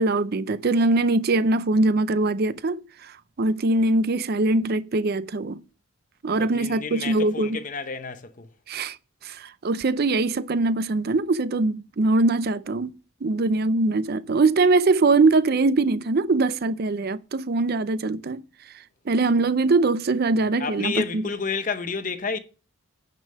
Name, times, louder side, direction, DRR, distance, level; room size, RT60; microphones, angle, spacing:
voice 1, 0.0-5.6 6.2-7.6 8.7-9.0 9.2-12.9 13.2-18.4 19.1-21.2, right 3 dB, 45° right, 0.5 m, -22 dB
voice 2, 6.4-8.5 20.4-22.4, left 4 dB, 35° left, 0.8 m, -30 dB
9.5 x 5.3 x 5.5 m
head